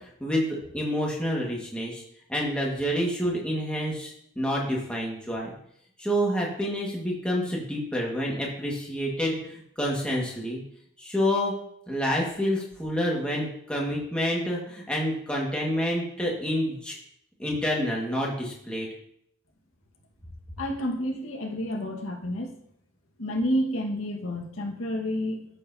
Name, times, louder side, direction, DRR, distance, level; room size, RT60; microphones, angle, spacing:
voice 1, 0.2-2.0 2.3-5.5 6.0-10.6 11.0-11.5 11.9-17.0 17.4-18.9, equal, 5° left, -3 dB, 1.8 m, -28 dB
voice 2, 20.6-22.5 23.2-25.5, equal, 85° left, 1 dB, 1.7 m, -29 dB
13.0 x 6.8 x 2.8 m, 0.71 s
head